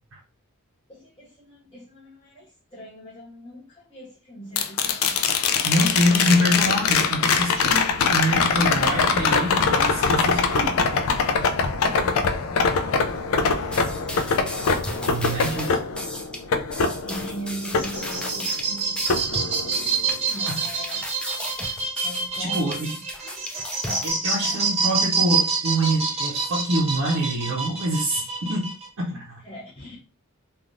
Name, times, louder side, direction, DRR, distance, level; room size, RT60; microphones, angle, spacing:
voice 1, 0.9-5.2 11.5-14.5 14.9-15.8 17.0-21.0 22.0-23.0 23.8-24.6 29.4-30.0, right 1 dB, 25° left, -9 dB, 0.7 m, -41 dB
sound 1, 4.6-18.7 19.1-20.1 22.4-22.5, left 5 dB, 70° left, 0.4 m, -23 dB
voice 2, 5.6-10.8 15.1-15.8 20.5-20.6 22.4-23.0 23.5-23.7 24.0-29.4, equal, 70° right, -4 dB, 0.7 m, -25 dB
sound 2, 13.7-24.1, left 1 dB, 5° left, 0.4 m, -35 dB
sound 3, 17.6-28.9, right 4 dB, 30° right, 0.7 m, -27 dB
3.3 x 2.3 x 2.5 m, 0.34 s
head